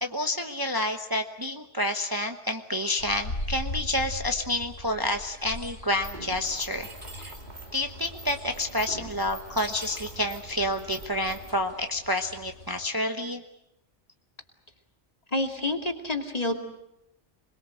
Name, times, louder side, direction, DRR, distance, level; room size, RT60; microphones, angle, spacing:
voice 1, 0.0-6.9 7.2-7.3 7.7-13.4, left 1 dB, 20° right, 5 dB, 1.1 m, -29 dB
sound 1, 3.0-12.9, left 1 dB, 80° left, 2.8 m, -41 dB
Mechanisms, 6.0-11.5, right 2 dB, 40° right, 2.7 m, -44 dB
voice 2, 15.3-16.5, left 2 dB, 30° left, 4 dB, 2.7 m, -28 dB
27.0 x 21.5 x 7.8 m, 0.85 s
omnidirectional pair, 1.2 m